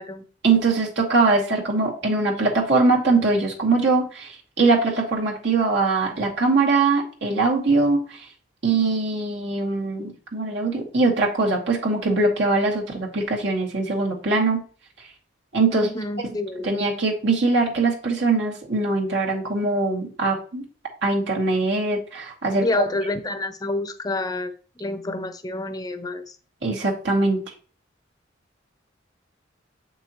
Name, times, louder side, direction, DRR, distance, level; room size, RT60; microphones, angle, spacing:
voice 1, 0.4-8.2 8.6-14.6 15.5-15.9 16.6-20.6 21.0-22.8 26.6-27.5, right 3 dB, 70° right, -2 dB, 2.2 m, -22 dB
voice 2, 15.7-16.7 22.6-24.5 24.8-26.4, left 2 dB, 20° left, 9 dB, 0.7 m, -28 dB
7.6 x 6.1 x 3.0 m, 0.39 s
head